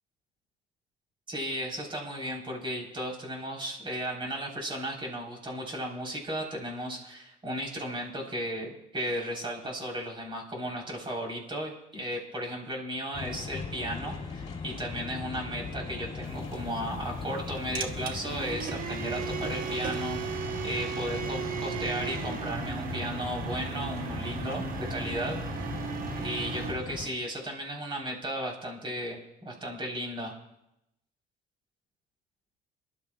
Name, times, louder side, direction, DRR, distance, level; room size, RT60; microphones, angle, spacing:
voice 1, 1.3-25.8 26.2-30.3, equal, 30° right, 0 dB, 4.0 m, -35 dB
sound 1, 13.1-27.1, left 5 dB, 40° left, 2.4 m, -39 dB
sound 2, 16.2-26.7, right 6 dB, 55° right, 1.0 m, -36 dB
26.5 x 11.5 x 2.4 m, 0.85 s
cardioid pair, 110°, 17 cm